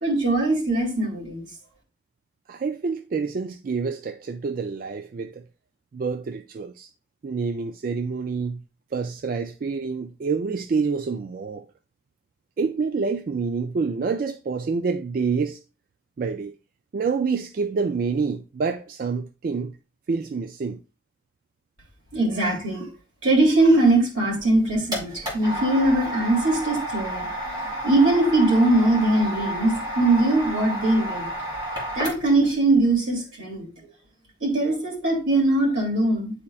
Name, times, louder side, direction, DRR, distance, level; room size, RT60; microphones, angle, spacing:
voice 1, 0.0-1.4 22.1-22.9 23.2-31.3 32.0-33.7 34.4-36.4, right 2 dB, 85° right, 2.5 m, -21 dB
voice 2, 2.5-5.4 5.9-6.9 7.2-8.6 8.9-11.6 12.6-15.6 16.2-16.5 16.9-19.8 20.1-20.8, right 5 dB, 45° right, 0.3 m, -27 dB
sound 1, 24.4-32.5, right 1 dB, 20° right, 2.1 m, -31 dB
9.6 x 4.3 x 2.3 m
head